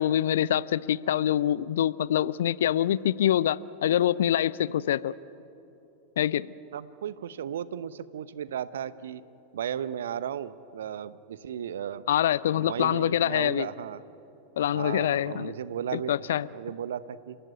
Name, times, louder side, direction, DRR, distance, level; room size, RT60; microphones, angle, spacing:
voice 1, 0.0-5.1 6.2-6.5 12.1-13.7 14.6-15.5 15.9-16.5, left 11 dB, 60° left, 20 dB, 0.5 m, -25 dB
voice 2, 6.7-9.2 9.5-12.0 12.6-14.0 14.7-16.1 16.5-17.4, right 9 dB, 60° right, 17 dB, 0.8 m, -35 dB
30.0 x 15.5 x 9.3 m, 2.8 s
figure-of-eight pair, 90°, 0 cm